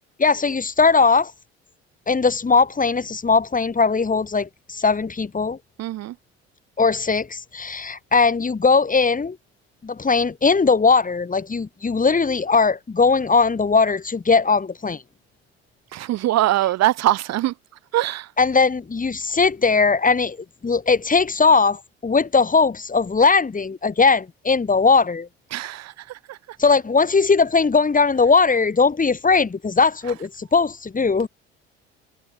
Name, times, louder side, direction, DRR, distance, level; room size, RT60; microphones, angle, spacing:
voice 1, 0.2-1.3 2.1-5.6 6.8-9.4 9.8-15.0 18.4-20.4 20.6-25.3 26.6-31.3, left 4 dB, 25° left, 7.1 m, -19 dB
voice 2, 5.8-6.1 15.9-17.5 17.9-18.3 25.5-26.4, right 14 dB, 55° right, 2.7 m, -22 dB
figure-of-eight pair, 55°, 31 cm